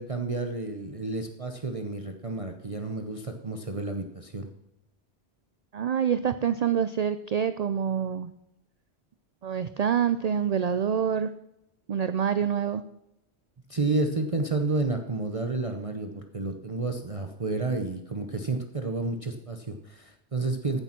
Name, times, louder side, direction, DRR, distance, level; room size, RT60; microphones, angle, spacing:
voice 1, 0.0-4.5 13.7-20.8, right 3 dB, 35° right, 5 dB, 0.9 m, -30 dB
voice 2, 5.7-8.3 9.4-11.3 11.9-12.8, right 8 dB, 50° right, 12 dB, 0.5 m, -26 dB
14.5 x 6.9 x 5.9 m, 0.86 s
omnidirectional pair, 1.1 m